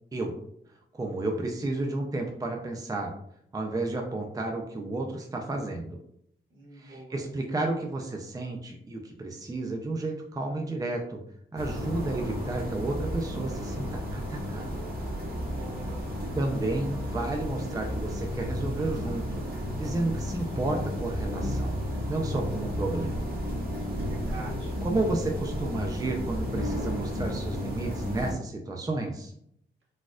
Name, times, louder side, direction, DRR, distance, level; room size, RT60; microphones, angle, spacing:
voice 1, 0.9-3.1 3.5-6.0 6.7-11.2 11.5-14.9 16.3-23.3 24.8-29.3, right 2 dB, 20° right, 2 dB, 0.5 m, -32 dB
voice 2, 6.5-7.2 15.4-16.0 24.0-24.8, right 2 dB, 70° right, -4 dB, 1.4 m, -45 dB
sound 1, 11.6-28.3, equal, 50° right, 1.3 m, -33 dB
4.2 x 2.3 x 2.4 m, 0.72 s
cardioid pair, 70°, 20 cm